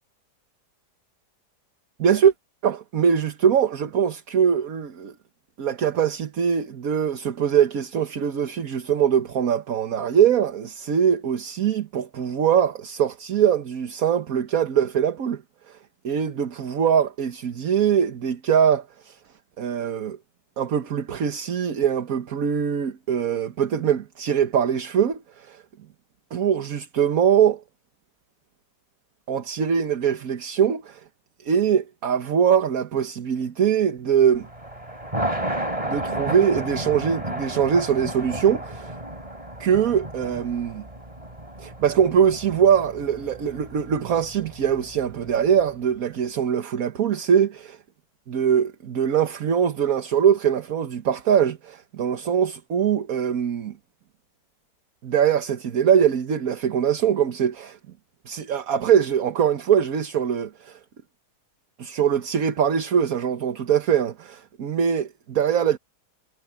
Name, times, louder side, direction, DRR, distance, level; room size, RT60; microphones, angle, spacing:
voice 1, 2.0-2.3 2.6-5.1 5.6-15.4 15.7-15.8 16.0-19.2 19.6-20.2 20.6-25.6 26.3-27.6 29.3-31.0 31.4-34.5 35.8-39.0 39.6-40.8 41.6-47.8 48.3-53.8 55.0-57.8 58.2-60.8 61.8-65.8, right 8 dB, 60° right, 1.6 m, -22 dB
Thunder, 34.3-45.6, right 1 dB, 20° right, 4.5 m, -33 dB
omnidirectional pair, 1.8 m